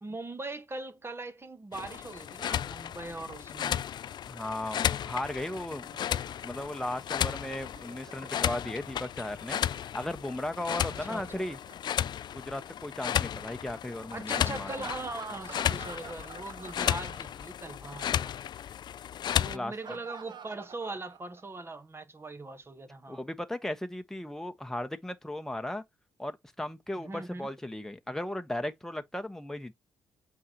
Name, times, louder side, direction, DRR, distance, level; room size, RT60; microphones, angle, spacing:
voice 1, 0.0-3.9 10.9-11.3 14.1-18.3 19.3-23.2 27.0-27.5, right 2 dB, 25° right, 1.4 m, -40 dB
sound 1, 1.7-19.6, left 10 dB, 55° left, 0.4 m, -34 dB
voice 2, 4.3-5.9 6.4-11.6 12.3-14.9 19.5-20.0 23.1-25.8 26.2-29.7, left 1 dB, 5° left, 1.1 m, -36 dB
Laughter, 5.3-9.0 10.7-12.8 14.5-17.6 17.9-18.0 19.5-21.6, right 6 dB, 55° right, 1.1 m, -49 dB
8.4 x 3.7 x 3.0 m
hypercardioid pair, 45°, 9 cm